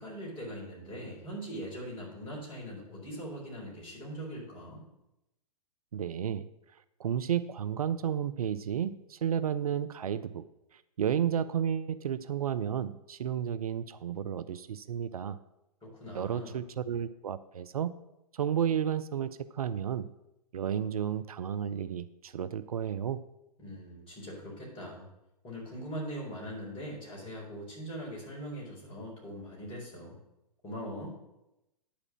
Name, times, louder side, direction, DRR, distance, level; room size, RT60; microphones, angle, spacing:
voice 1, 0.0-4.8 15.8-16.6 23.6-25.1 25.4-30.2 30.6-31.2, equal, 25° left, -3 dB, 4.5 m, -41 dB
voice 2, 5.9-6.5 7.0-10.5 11.0-15.4 16.1-17.9 18.3-20.1 20.5-23.2, right 9 dB, 65° right, 14 dB, 0.5 m, -32 dB
10.0 x 4.9 x 7.4 m, 0.90 s
figure-of-eight pair, 105°, 20 cm